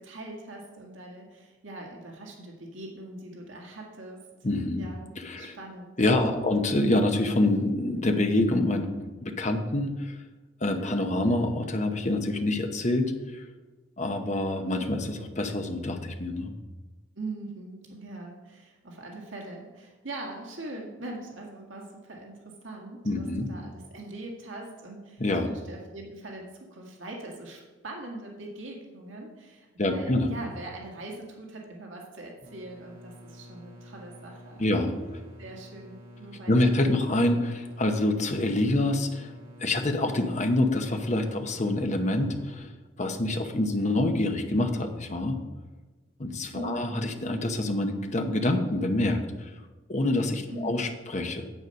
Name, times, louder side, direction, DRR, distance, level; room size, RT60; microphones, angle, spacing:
voice 1, 0.0-4.2 4.7-6.5 17.2-34.9 35.4-37.0 46.5-46.9 50.5-50.8, right 2 dB, 75° right, 0 dB, 1.8 m, -41 dB
voice 2, 4.4-4.9 5.2-5.5 6.0-8.9 9.2-10.2 10.6-13.5 14.0-16.5 23.0-23.5 25.2-25.5 29.8-30.3 34.6-35.2 36.5-39.3 39.6-42.7 43.0-45.4 46.2-49.5 49.9-51.4, left 1 dB, 35° left, 5 dB, 0.9 m, -26 dB
sound 1, 32.4-42.6, equal, 45° right, 1.8 m, -49 dB
9.4 x 8.0 x 5.3 m, 1.2 s
head